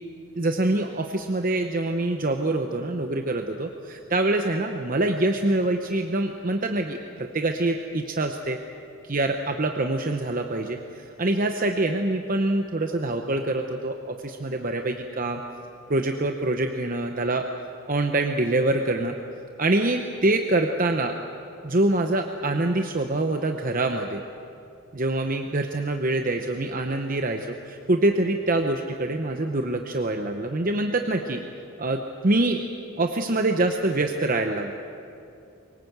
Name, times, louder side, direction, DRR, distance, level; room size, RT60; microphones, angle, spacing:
voice 1, 0.3-8.6 9.1-15.4 15.9-17.5 17.9-19.1 19.6-21.2 21.6-24.2 24.9-31.4 31.8-32.6 33.0-34.7, right 2 dB, 40° right, 5 dB, 0.8 m, -25 dB
23.0 x 19.0 x 8.0 m, 2.7 s
head